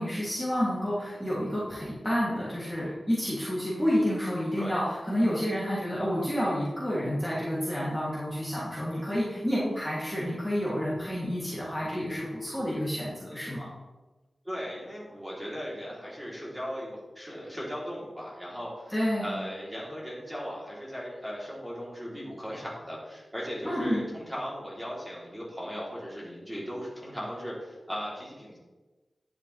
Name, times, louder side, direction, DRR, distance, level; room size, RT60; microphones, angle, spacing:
voice 1, 0.0-13.7 18.9-19.3 23.6-24.0, equal, 10° left, -9 dB, 2.8 m, -29 dB
voice 2, 14.4-18.9 19.2-28.6, equal, 5° right, -6 dB, 3.3 m, -37 dB
10.5 x 6.9 x 3.4 m, 1.2 s
wide cardioid pair, 65°, 0 cm